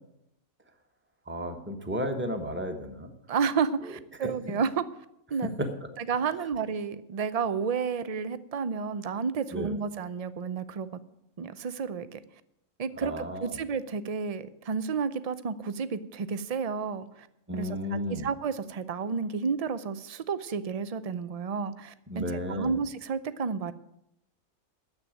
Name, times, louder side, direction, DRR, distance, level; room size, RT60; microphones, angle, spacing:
voice 1, 1.3-3.1 3.8-3.9 4.2-4.3 5.6-5.7 9.5-9.8 13.0-13.6 17.5-18.3 22.1-22.8, equal, 10° right, 5 dB, 1.1 m, -33 dB
voice 2, 3.3-4.8 5.3-5.5 6.0-11.0 11.4-12.2 12.8-17.3 17.5-23.7, right 5 dB, 55° right, 13 dB, 0.4 m, -31 dB
9.7 x 7.7 x 9.0 m, 0.82 s
omnidirectional pair, 1.4 m